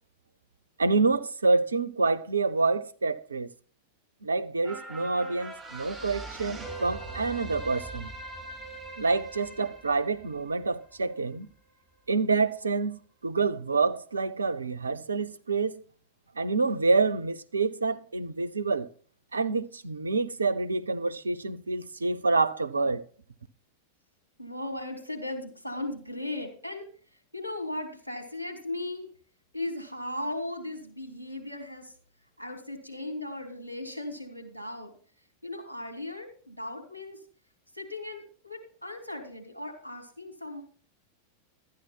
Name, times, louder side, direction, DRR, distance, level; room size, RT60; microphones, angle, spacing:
voice 1, 0.8-3.5 4.2-8.1 9.0-11.5 12.1-15.8 16.4-18.9 19.3-23.0, right 3 dB, 75° right, 0.6 m, -27 dB
sound 1, 4.6-11.3 11.7-11.8, right 2 dB, 10° right, 4.8 m, -42 dB
voice 2, 24.4-29.1 29.5-31.9 32.4-34.9 35.4-37.2 37.7-40.6, left 1 dB, 85° left, 3.1 m, -37 dB
12.5 x 9.6 x 4.4 m
figure-of-eight pair, 90°, 0 cm